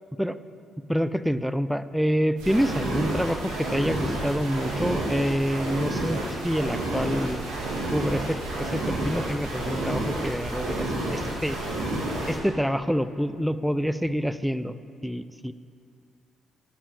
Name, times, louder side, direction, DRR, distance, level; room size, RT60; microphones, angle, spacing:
voice 1, 0.9-7.4 7.9-11.6 12.3-14.7 15.0-15.5, equal, ahead, 13 dB, 0.3 m, -27 dB
sound 1, 2.4-12.4, right 1 dB, 75° right, 2.0 m, -30 dB
11.0 x 5.0 x 3.7 m, 2.5 s
hypercardioid pair, 50°, 0 cm